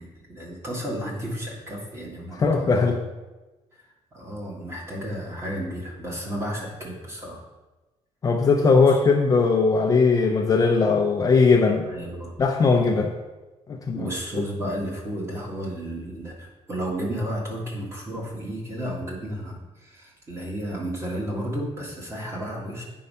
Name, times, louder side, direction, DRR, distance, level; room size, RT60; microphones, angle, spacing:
voice 1, 0.0-2.9 4.1-7.4 8.9-9.0 11.9-12.3 13.9-22.8, equal, 25° right, -3 dB, 1.8 m, -32 dB
voice 2, 2.4-3.0 8.2-11.9 12.4-13.1 13.7-14.1, left 4 dB, 30° left, 2 dB, 0.6 m, -19 dB
8.3 x 4.7 x 5.5 m, 1.1 s
cardioid pair, 175°, 12 cm